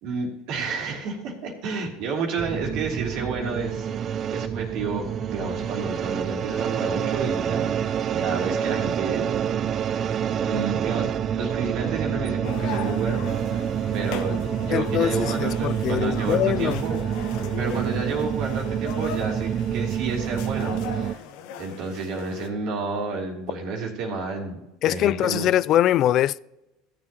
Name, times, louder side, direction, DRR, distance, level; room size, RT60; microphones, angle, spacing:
voice 1, 0.0-9.2 10.4-13.2 13.9-17.0 17.6-21.2 21.6-24.6 24.8-25.5, right 4 dB, 65° right, 3.1 m, -31 dB
sound 1, 2.4-21.1, right 9 dB, 45° right, 0.4 m, -27 dB
sound 2, 12.4-22.5, left 8 dB, 70° left, 1.0 m, -38 dB
voice 2, 14.7-16.8 24.8-26.4, left 12 dB, 50° left, 0.3 m, -22 dB
15.5 x 7.6 x 2.9 m
supercardioid pair, 95°, 0 cm